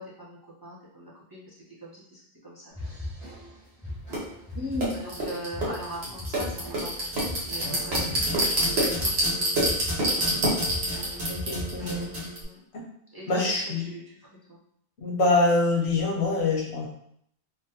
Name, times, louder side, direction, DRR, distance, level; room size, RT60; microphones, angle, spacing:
voice 1, 0.0-2.9 4.9-9.5 10.5-10.6 12.4-12.6 13.1-14.6, right 1 dB, 25° right, -7 dB, 0.6 m, -41 dB
sound 1, 2.7-12.3, left 1 dB, 35° left, 1.4 m, -40 dB
sound 2, 4.1-4.2 4.8-12.4, right 1 dB, 75° right, 1.3 m, -27 dB
voice 2, 4.5-4.9 11.3-12.1 12.7-12.8 13.3-13.8 15.0-16.9, left 2 dB, 75° left, -2 dB, 1.1 m, -25 dB
3.7 x 2.2 x 2.7 m, 0.69 s
omnidirectional pair, 1.1 m